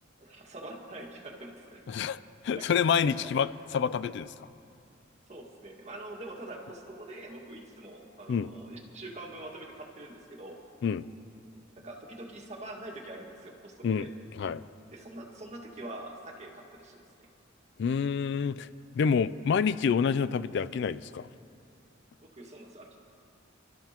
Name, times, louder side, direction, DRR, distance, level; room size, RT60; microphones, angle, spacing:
voice 1, 0.2-1.8 2.5-2.7 3.0-3.3 5.3-10.6 11.8-14.1 14.9-17.3 22.2-23.0, right 1 dB, 35° right, 0 dB, 1.8 m, -44 dB
voice 2, 1.9-2.2 2.4-4.3 8.3-8.5 10.8-11.0 13.8-14.1 14.3-14.6 17.8-18.7 18.9-21.3, left 6 dB, 60° left, 16 dB, 0.3 m, -27 dB
29.5 x 12.5 x 2.9 m, 2.7 s
head